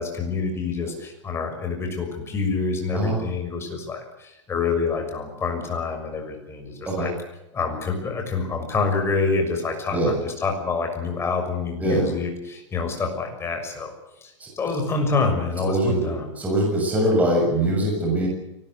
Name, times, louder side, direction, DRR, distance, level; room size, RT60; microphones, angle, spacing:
voice 1, 0.0-7.1 7.5-13.9 14.2-16.3, left 4 dB, 15° left, 4 dB, 6.5 m, -27 dB
voice 2, 15.6-16.0 16.3-18.3, right 1 dB, 10° right, -1 dB, 6.8 m, -22 dB
24.0 x 19.5 x 8.0 m, 0.93 s
supercardioid pair, 150°, 16 cm